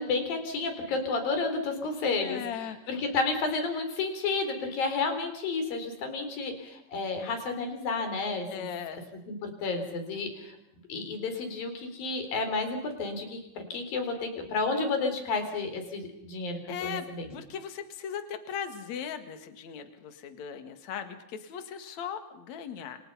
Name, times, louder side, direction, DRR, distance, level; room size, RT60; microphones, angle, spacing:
voice 1, 0.0-8.5 9.3-10.5 10.9-17.3, left 3 dB, 80° left, 6 dB, 5.8 m, -31 dB
voice 2, 2.2-2.8 8.5-9.0 16.7-17.0 17.3-23.0, left 8 dB, 55° left, 8 dB, 3.1 m, -38 dB
29.0 x 27.0 x 5.7 m, 0.81 s
omnidirectional pair, 4.0 m